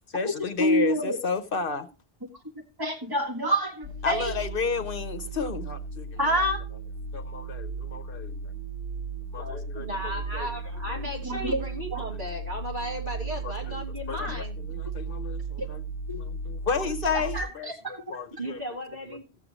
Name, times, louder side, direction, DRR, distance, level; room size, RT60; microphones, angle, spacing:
voice 1, 0.1-1.9 4.0-6.2 7.1-8.5 9.3-10.5 10.9-11.0 13.4-13.8 14.1-15.8 16.1-18.6, left 5 dB, 60° left, 1.0 m, -32 dB
voice 2, 0.6-1.2 2.8-4.3 6.2-6.6 11.2-11.6 11.9-12.0 15.6-15.7 16.1-16.2 17.1-18.0, equal, 20° right, 1.7 m, -27 dB
sound 1, 3.8-17.4, right 4 dB, 90° right, 3.3 m, -36 dB
voice 3, 9.3-14.6 18.4-19.3, equal, 50° right, 3.7 m, -35 dB
15.5 x 7.6 x 3.0 m
omnidirectional pair, 1.1 m